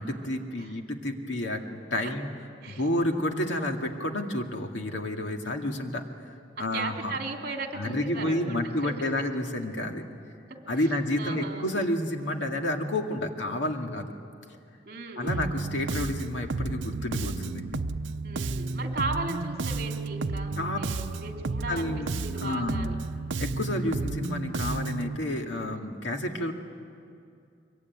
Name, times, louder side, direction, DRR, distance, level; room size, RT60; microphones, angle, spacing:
voice 1, 0.0-2.3 2.7-6.0 6.6-7.1 7.7-10.0 10.7-14.1 15.2-17.8 20.6-20.8 21.7-22.1 22.4-22.9 23.4-26.5, left 1 dB, 75° left, 3 dB, 2.2 m, -30 dB
voice 2, 6.6-9.3 10.5-10.9 11.2-11.7 14.9-15.5 18.2-22.9, right 3 dB, 50° right, 2 dB, 2.9 m, -37 dB
Bass guitar, 15.3-25.2, right 3 dB, 80° right, 0.7 m, -32 dB
24.0 x 23.5 x 9.5 m, 2.5 s
head